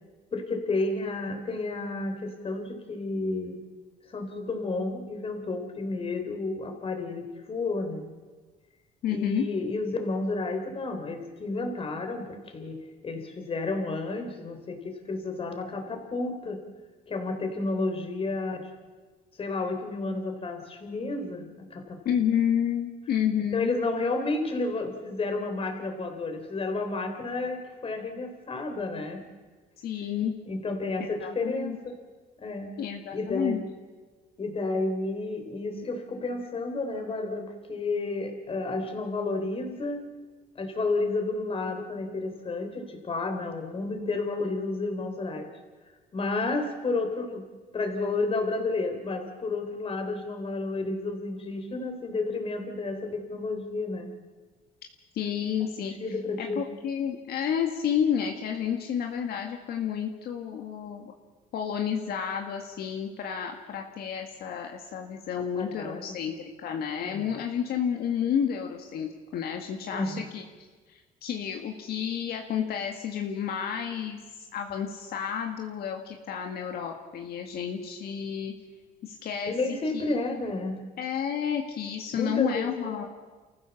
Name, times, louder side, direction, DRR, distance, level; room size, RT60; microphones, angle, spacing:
voice 1, 0.3-3.6 4.1-8.1 9.1-12.8 13.0-16.6 17.1-18.7 19.4-22.0 23.5-29.2 30.5-32.0 32.4-32.7 33.1-33.7 34.4-40.0 40.6-45.5 46.1-47.4 47.7-54.1 55.8-56.6 65.6-66.2 67.0-67.2 69.9-70.2 79.5-80.8 82.1-83.1, left 3 dB, 35° left, 5 dB, 3.9 m, -31 dB
voice 2, 9.0-9.5 22.0-23.8 29.8-30.3 31.0-31.8 32.8-33.6 55.1-55.9 56.4-61.1 61.5-70.5 70.9-78.5 79.0-79.5 79.9-80.4 81.0-83.0, left 8 dB, 65° left, 3 dB, 1.9 m, -30 dB
28.5 x 15.0 x 7.2 m, 1.3 s
cardioid pair, 110°, 17 cm